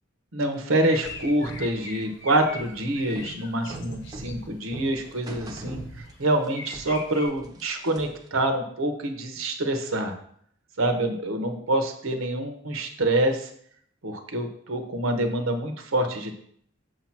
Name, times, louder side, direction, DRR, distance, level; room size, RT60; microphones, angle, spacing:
voice 1, 0.3-10.1 10.8-13.5 14.0-16.3, right 1 dB, 85° right, 5 dB, 1.0 m, -26 dB
sound 1, 0.7-4.4 5.0-5.1 5.6-5.7 6.1-6.2 6.5-7.3, left 4 dB, 65° left, 0.9 m, -41 dB
sound 2, 1.0-6.5 6.7-8.3, right 1 dB, 20° right, 0.7 m, -41 dB
6.5 x 2.9 x 5.8 m, 0.63 s
head